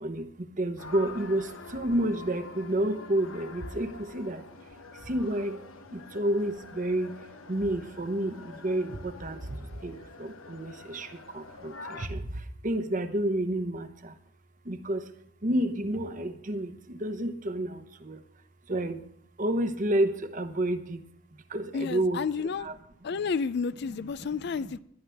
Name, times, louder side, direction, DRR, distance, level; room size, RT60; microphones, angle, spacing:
voice 1, 0.0-4.4 5.0-5.6 5.9-7.1 7.5-14.1 14.6-15.1 15.4-18.2 18.7-19.0 19.4-21.0 21.5-22.2 22.6-22.8, right 1 dB, 40° right, 0.9 m, -30 dB
sound 1, 0.8-12.1, left 4 dB, 85° left, 1.0 m, -46 dB
voice 2, 21.7-22.7 23.0-24.8, left 5 dB, 55° left, 0.4 m, -31 dB
20.0 x 11.0 x 3.5 m
head